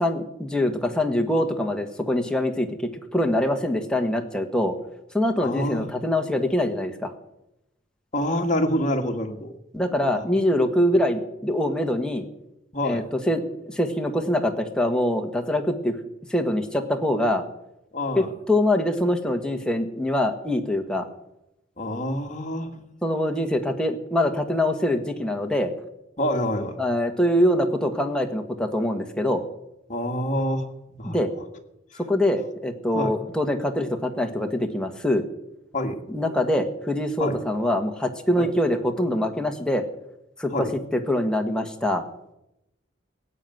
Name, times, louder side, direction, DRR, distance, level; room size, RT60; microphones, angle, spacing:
voice 1, 0.0-4.8 5.1-7.1 9.7-12.2 12.8-13.4 13.7-15.9 16.3-17.4 18.1-21.1 23.0-25.7 26.8-29.4 31.0-31.3 32.1-35.2 36.1-39.8 40.4-40.7 40.9-42.0, left 1 dB, 5° left, 3 dB, 1.4 m, -24 dB
voice 2, 5.4-5.9 8.1-9.5 12.7-13.0 17.9-18.3 21.8-22.7 26.2-26.8 29.9-30.7 30.9-31.2 32.9-33.1 35.7-36.0 37.2-37.4 38.4-38.5 40.5-40.7, left 1 dB, 40° left, 3 dB, 1.8 m, -26 dB
16.5 x 9.3 x 9.2 m, 0.89 s
head